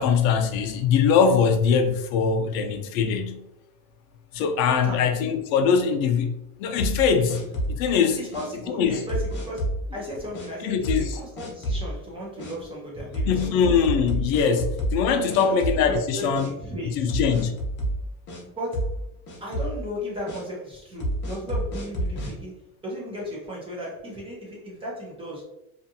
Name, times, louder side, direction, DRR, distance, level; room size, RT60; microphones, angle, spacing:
voice 1, 0.0-3.4 4.3-6.3 6.6-7.4 7.7-8.3 8.7-9.1 10.6-11.2 13.2-16.5 16.8-17.5, left 6 dB, 70° left, 6 dB, 0.5 m, -22 dB
voice 2, 4.7-5.0 7.9-9.7 9.9-13.5 14.5-14.7 15.3-15.6 15.8-17.1 18.6-19.0 19.4-22.5 22.8-25.4, equal, 15° right, -4 dB, 0.4 m, -35 dB
sound 1, 6.8-7.9 8.3-8.5 9.1-9.8 10.3-10.5 10.8-11.1 11.4-11.9 12.4-12.5 13.1-15.1 15.3-16.0 16.3-16.5 17.1-18.4 18.7-19.0 19.3-19.8 20.3-20.4 21.0-22.3, equal, 25° left, 0.6 m, -29 dB
2.5 x 2.4 x 2.6 m, 0.84 s
supercardioid pair, 145°, 42 cm